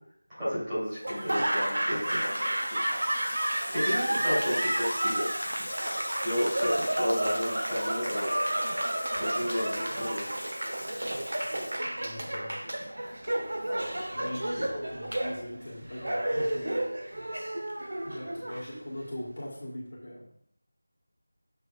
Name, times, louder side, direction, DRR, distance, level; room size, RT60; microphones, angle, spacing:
voice 1, 0.4-3.0 3.7-5.4 6.2-8.3 9.1-10.3, equal, 10° right, -15 dB, 2.2 m, -32 dB
Water tap faucet / Sink (filling or washing), 1.0-12.4, left 1 dB, 50° left, 1.2 m, -42 dB
Laughter / Applause, 1.0-19.1, right 1 dB, 60° right, 1.0 m, -31 dB
voice 2, 12.0-12.6 13.2-13.4 14.1-16.9 18.0-20.3, left 1 dB, 35° left, -6 dB, 1.6 m, -41 dB
6.8 x 6.0 x 2.5 m, 0.70 s
figure-of-eight pair, 180°, 0 cm